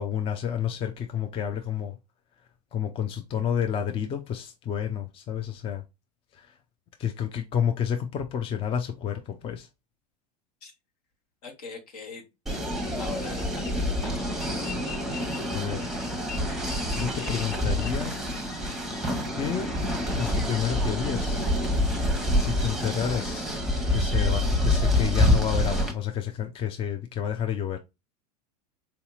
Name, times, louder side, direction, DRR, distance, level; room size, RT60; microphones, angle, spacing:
voice 1, 0.0-2.0 2.7-5.8 6.3-6.6 7.0-9.7 15.5-15.9 16.9-18.2 19.4-19.7 20.2-21.5 22.3-23.4 23.9-27.8, left 9 dB, 25° left, 0.5 m, -30 dB
voice 2, 11.4-12.2 13.0-14.6, left 4 dB, 70° left, 1.4 m, -42 dB
sound 1, 12.5-25.9, left 1 dB, ahead, 1.0 m, -27 dB
4.3 x 2.8 x 2.3 m
hypercardioid pair, 85°, 21 cm